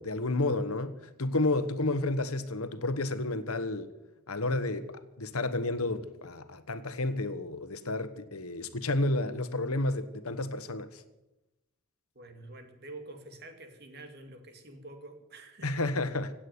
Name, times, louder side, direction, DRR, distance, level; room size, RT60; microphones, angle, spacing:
voice 1, 0.0-3.9 4.3-11.0 15.6-16.3, left 2 dB, 85° left, 1.3 m, -31 dB
voice 2, 12.1-15.7, right 2 dB, 45° right, 2.5 m, -47 dB
17.0 x 8.8 x 9.6 m
head